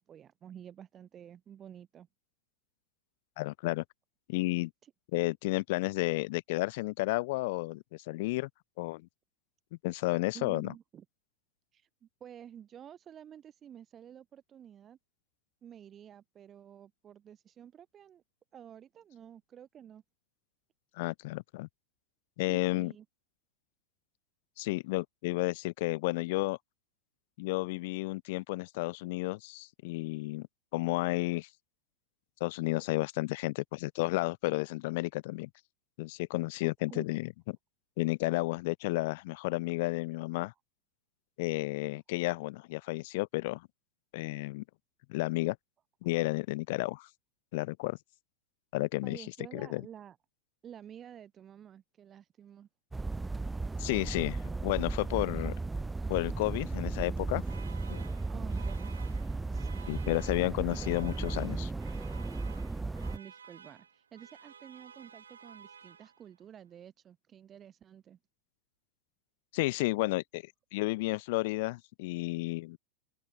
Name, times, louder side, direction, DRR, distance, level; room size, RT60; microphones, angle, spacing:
voice 1, 0.0-2.1 4.8-4.9 10.3-11.1 11.7-15.0 15.6-18.2 18.5-20.0 22.4-23.1 36.6-37.1 46.1-46.2 49.0-50.2 50.6-52.7 58.3-58.9 59.5-60.2 60.7-61.3 63.1-68.2, right 9 dB, 30° right, 1.9 m, -51 dB
voice 2, 3.4-3.8 4.3-4.7 5.1-8.5 8.8-9.1 9.8-10.7 21.0-21.7 22.4-22.9 24.6-26.6 27.4-30.5 30.7-31.5 32.4-35.5 36.0-37.3 38.0-40.5 41.4-43.7 44.1-44.6 45.1-45.6 46.0-47.1 47.5-48.0 48.7-49.2 49.5-49.8 53.8-55.5 56.1-57.4 57.9-58.1 59.9-61.7 69.5-70.4 70.7-72.8, left 22 dB, 60° left, 0.5 m, -32 dB
sound 1, 52.9-63.2, right 3 dB, 10° right, 0.6 m, -35 dB
sound 2, 57.4-66.5, right 6 dB, 85° right, 3.6 m, -54 dB
hypercardioid pair, 100°, 0 cm